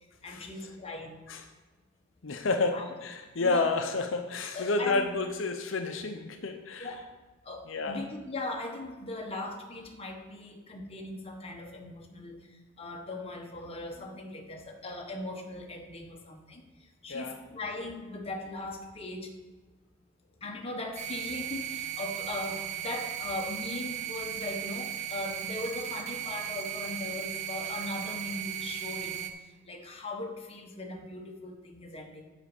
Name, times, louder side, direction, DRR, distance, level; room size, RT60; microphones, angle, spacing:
voice 1, 0.2-1.2 2.7-2.9 3.4-3.8 4.5-5.1 6.7-7.1 7.4-12.5 12.8-19.3 20.4-29.4 29.6-32.3, left 2 dB, 30° left, 2 dB, 1.2 m, -39 dB
voice 2, 2.2-6.9 7.7-8.0 17.1-17.4, left 3 dB, 75° left, 6 dB, 0.7 m, -30 dB
sound 1, 21.0-29.3, right 11 dB, 35° right, 0.8 m, -36 dB
8.6 x 5.3 x 7.1 m, 1.3 s
head